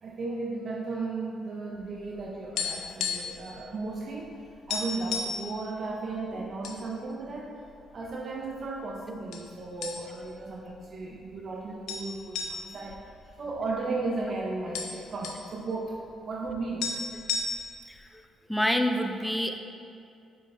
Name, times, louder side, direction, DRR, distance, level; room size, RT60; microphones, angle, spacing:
voice 1, 0.0-4.4 4.7-7.6 7.9-17.0, right 3 dB, 50° right, -1 dB, 0.6 m, -35 dB
sound 1, 2.0-3.5 3.7-3.9 4.3-4.4 4.7-5.4 6.1-6.8 7.2-7.3 8.0-8.6 9.3-9.5 9.8-10.3 10.7-10.8 11.9-13.9 14.2-14.3 14.5-15.5 16.5-16.6 16.8-17.9, left 5 dB, 85° left, 0.6 m, -33 dB
voice 2, 17.9-18.2 18.5-19.6, equal, 5° left, 5 dB, 0.5 m, -27 dB
6.8 x 5.5 x 3.3 m, 2.5 s
cardioid pair, 90°, 0 cm